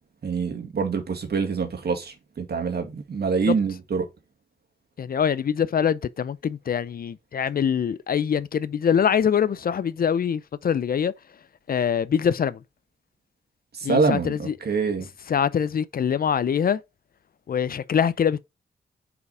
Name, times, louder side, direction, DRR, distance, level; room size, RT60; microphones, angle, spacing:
voice 1, 0.2-4.1 13.7-15.1, right 5 dB, 65° right, 2.0 m, -25 dB
voice 2, 5.0-11.1 11.7-12.6 13.8-14.5 15.3-16.8 17.5-18.4, left 8 dB, 55° left, 0.5 m, -24 dB
5.0 x 4.8 x 4.8 m
cardioid pair, 60°, 18 cm